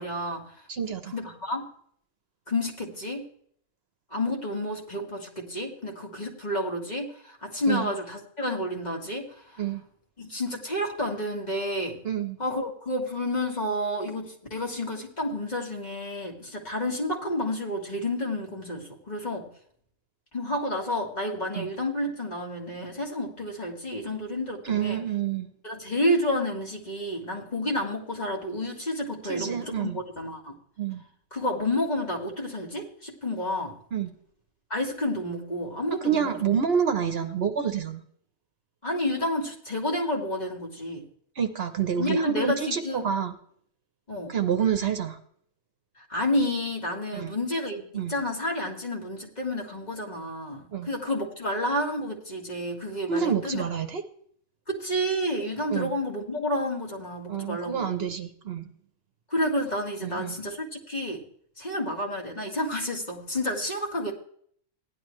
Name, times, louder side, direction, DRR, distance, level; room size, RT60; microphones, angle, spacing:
voice 1, 0.0-0.6 1.1-1.7 2.5-3.3 4.1-9.6 10.2-12.0 12.4-19.5 20.3-25.0 25.6-30.6 31.3-33.8 34.7-36.6 38.8-41.1 42.0-43.1 44.1-44.3 46.0-53.6 54.7-58.1 59.3-61.2 61.6-64.1, left 1 dB, 35° left, 0 dB, 1.9 m, -30 dB
voice 2, 0.7-1.1 7.7-7.9 9.6-9.8 12.0-12.4 21.6-21.7 24.7-25.5 29.3-30.0 30.8-31.0 33.9-34.1 36.0-38.0 41.4-43.3 44.3-45.2 47.1-47.3 47.9-48.1 50.7-50.9 53.1-54.0 55.7-56.0 57.3-58.7 60.0-60.4, right 8 dB, 60° right, 8 dB, 1.0 m, -28 dB
15.5 x 11.0 x 3.2 m, 0.62 s
omnidirectional pair, 1.3 m